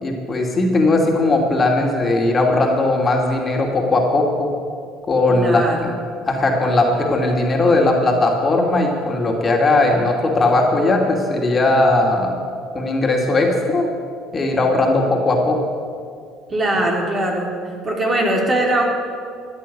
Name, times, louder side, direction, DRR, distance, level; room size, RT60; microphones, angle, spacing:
voice 1, 0.0-4.5 5.1-5.9 6.3-12.4 12.7-13.9 14.3-15.6, left 2 dB, 30° left, 0 dB, 2.7 m, -18 dB
voice 2, 5.3-5.9 16.5-17.5 17.8-18.8, right 1 dB, 30° right, 0 dB, 3.6 m, -21 dB
15.0 x 9.5 x 8.5 m, 2.2 s
figure-of-eight pair, 60°, 0 cm